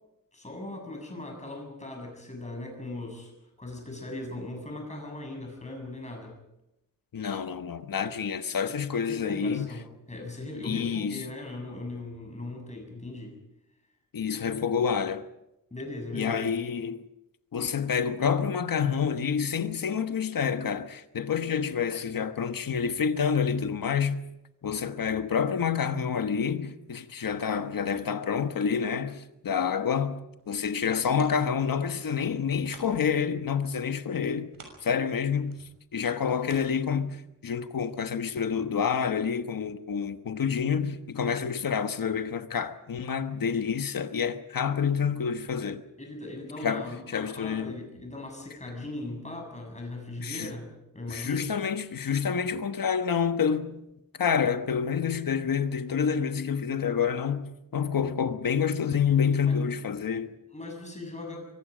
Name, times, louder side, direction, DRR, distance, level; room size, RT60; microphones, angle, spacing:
voice 1, 0.3-3.3 3.6-6.3 9.1-13.3 15.7-16.4 46.0-51.5 59.4-59.8 60.5-61.6, left 2 dB, 20° left, 7.3 m, -39 dB
voice 2, 7.1-9.7 10.6-11.3 14.1-15.2 16.1-17.0 17.5-24.2 24.6-30.2 30.5-34.5 34.8-35.6 35.9-45.8 46.6-46.9 47.1-47.8 50.2-50.5 51.1-53.8 54.2-60.3, left 7 dB, 85° left, 1.3 m, -28 dB
sound 1, 30.3-33.3 33.6-37.4 37.9-38.0, right 4 dB, 85° right, 6.3 m, -53 dB
25.5 x 24.5 x 5.2 m
wide cardioid pair, 160°, 33 cm